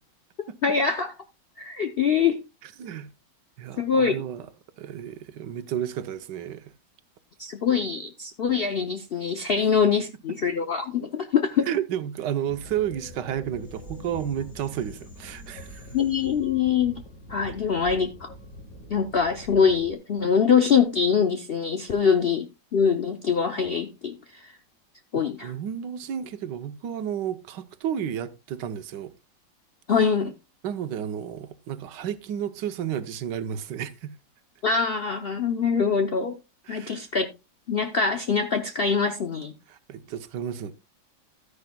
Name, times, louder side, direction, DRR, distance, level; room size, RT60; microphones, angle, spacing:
voice 1, 0.6-1.1 1.6-2.4 3.8-4.1 7.4-11.7 15.9-17.0 17.3-18.3 18.9-22.5 22.7-24.5 25.1-25.5 29.9-30.3 34.6-36.4 36.7-37.3 37.7-39.5, left 6 dB, 80° left, 0.5 m, -24 dB
voice 2, 2.8-3.1 3.6-4.5 4.8-6.7 11.7-15.9 25.1-29.1 30.6-34.1 36.7-37.1 39.7-40.7, right 9 dB, 70° right, 1.4 m, -32 dB
sound 1, 12.4-19.9, left 1 dB, 50° left, 2.2 m, -44 dB
13.0 x 9.7 x 2.2 m
omnidirectional pair, 2.0 m